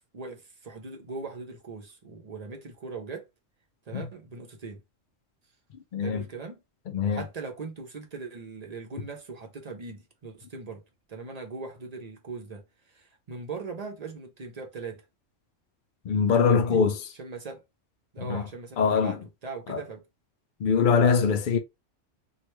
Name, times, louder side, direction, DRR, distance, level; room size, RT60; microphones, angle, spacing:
voice 1, 0.1-3.3 3.9-4.8 6.0-6.6 7.1-10.8 11.1-15.0 16.4-16.8 17.2-17.6 18.1-20.0, right 4 dB, 45° right, 0.5 m, -40 dB
voice 2, 5.9-6.2 6.9-7.2 16.1-17.1 18.2-18.4 18.8-19.2 19.7-19.8 20.6-21.6, left 6 dB, 70° left, 0.5 m, -23 dB
3.1 x 2.4 x 3.1 m
omnidirectional pair, 1.3 m